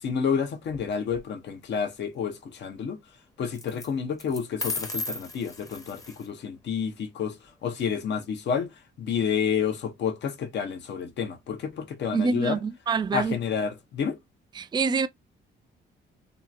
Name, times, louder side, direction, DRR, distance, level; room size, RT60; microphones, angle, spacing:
voice 1, 0.0-3.0 3.4-8.7 9.0-12.6 13.1-14.2, left 7 dB, 65° left, 0.8 m, -29 dB
sound 1, 0.7-1.2 3.5-3.9 4.2-6.3, left 2 dB, 15° left, 0.7 m, -35 dB
voice 2, 12.1-13.4 14.6-15.1, right 4 dB, 20° right, 0.4 m, -26 dB
2.8 x 2.3 x 2.4 m
cardioid pair, 90°, 20 cm